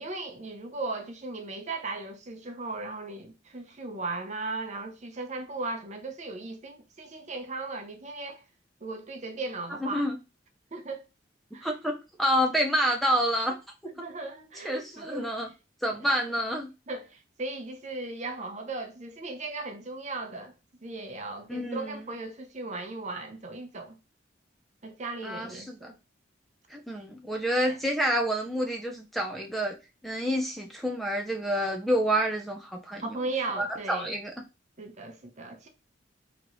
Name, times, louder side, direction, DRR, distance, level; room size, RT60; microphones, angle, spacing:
voice 1, 0.0-8.4 8.8-10.2 10.7-11.0 11.5-11.7 14.0-15.3 15.9-16.2 16.9-20.5 20.8-24.0 24.8-26.0 26.9-27.0 27.6-27.8 33.0-34.1 34.8-35.7, right 3 dB, 40° right, 0.7 m, -37 dB
voice 2, 9.8-10.2 11.6-13.6 14.6-15.5 15.8-16.7 21.5-22.0 25.2-25.9 26.7-29.8 30.0-33.0 33.6-34.3, equal, ahead, 0.5 m, -28 dB
3.9 x 2.9 x 3.0 m
head